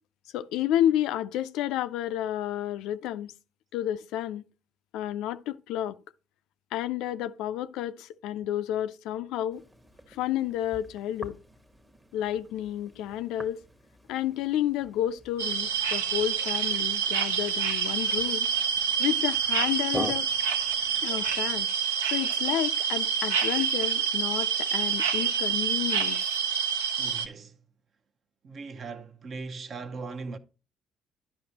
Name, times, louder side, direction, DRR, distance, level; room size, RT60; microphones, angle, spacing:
voice 1, 0.3-3.3 3.7-4.4 4.9-6.0 6.7-9.6 10.1-11.4 12.1-13.6 14.1-18.5 19.0-20.3 21.0-21.7 22.1-26.2, left 12 dB, 70° left, 0.3 m, -30 dB
sound 1, 9.5-21.6, right 1 dB, 15° right, 1.0 m, -45 dB
sound 2, 15.4-27.3, right 7 dB, 85° right, 0.5 m, -27 dB
voice 2, 27.0-27.6 28.4-30.4, right 4 dB, 50° right, 0.7 m, -39 dB
10.5 x 5.7 x 2.9 m
hypercardioid pair, 50°, 0 cm